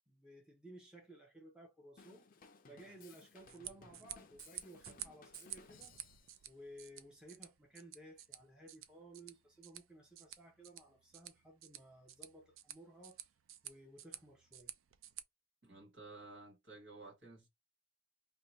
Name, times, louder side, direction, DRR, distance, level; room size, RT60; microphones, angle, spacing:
voice 1, 0.1-2.3 2.6-6.0 6.5-13.2 13.6-14.7, right 1 dB, 5° right, 0.9 m, -57 dB
Drum kit / Drum, 2.0-6.4, left 5 dB, 45° left, 0.5 m, -61 dB
sound 1, 3.3-15.2, right 12 dB, 85° right, 0.4 m, -52 dB
voice 2, 15.6-17.5, right 2 dB, 65° right, 1.5 m, -54 dB
2.8 x 2.3 x 4.1 m
head